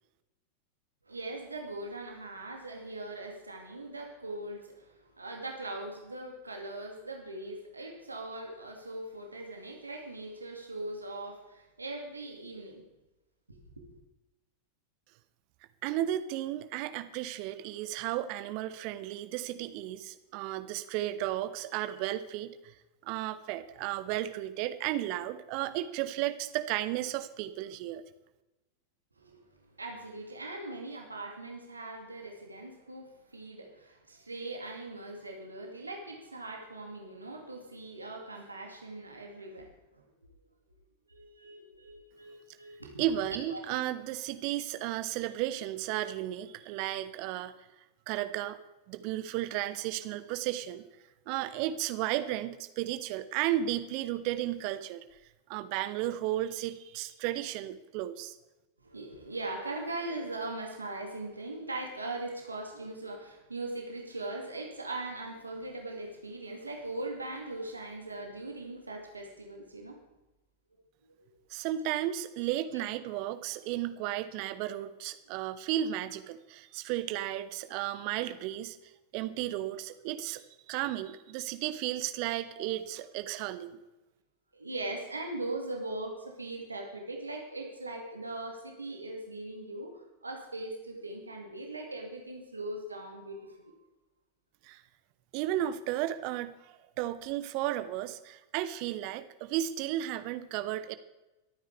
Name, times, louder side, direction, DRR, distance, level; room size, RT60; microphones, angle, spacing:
voice 1, 1.0-12.8 13.5-14.0 29.2-40.3 41.1-43.6 58.8-70.0 71.0-71.3 72.4-72.9 82.6-82.7 84.5-93.7, right 2 dB, 80° right, 2 dB, 2.2 m, -40 dB
voice 2, 15.8-22.7 23.0-28.0 43.0-47.5 48.1-48.6 48.9-50.8 51.3-55.0 55.5-58.3 71.5-78.8 79.1-80.4 80.7-83.8 94.6-94.8 95.3-101.0, right 13 dB, 45° right, 12 dB, 1.0 m, -34 dB
24.0 x 9.4 x 3.4 m, 1.0 s
figure-of-eight pair, 90°, 0 cm